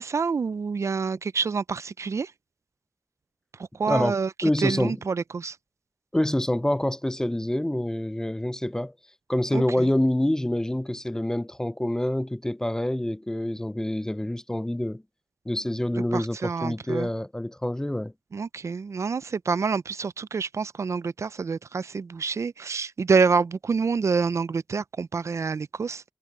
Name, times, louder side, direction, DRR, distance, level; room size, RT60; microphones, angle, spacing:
voice 1, 0.0-2.3 3.8-4.3 4.6-5.5 9.5-9.6 16.1-17.1 18.3-26.0, right 5 dB, 70° right, 0.4 m, -27 dB
voice 2, 4.4-5.0 6.1-8.9 9.3-15.0 15.5-18.1, left 1 dB, 10° left, 0.4 m, -26 dB
wide cardioid pair, 80°, 5 cm